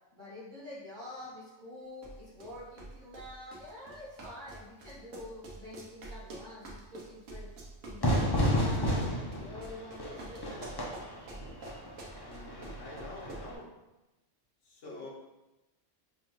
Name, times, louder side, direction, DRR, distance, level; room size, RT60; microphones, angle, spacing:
voice 1, 0.1-7.5 7.8-11.0, left 1 dB, 40° right, -6 dB, 1.2 m, -47 dB
sound 1, 2.0-13.6, right 2 dB, 80° right, 1.2 m, -47 dB
Fire / Fireworks, 8.0-13.5, equal, 30° left, 0.4 m, -32 dB
voice 2, 12.2-13.7 14.6-15.1, left 2 dB, 70° left, -4 dB, 1.2 m, -46 dB
5.7 x 2.3 x 3.0 m, 1.0 s
omnidirectional pair, 1.3 m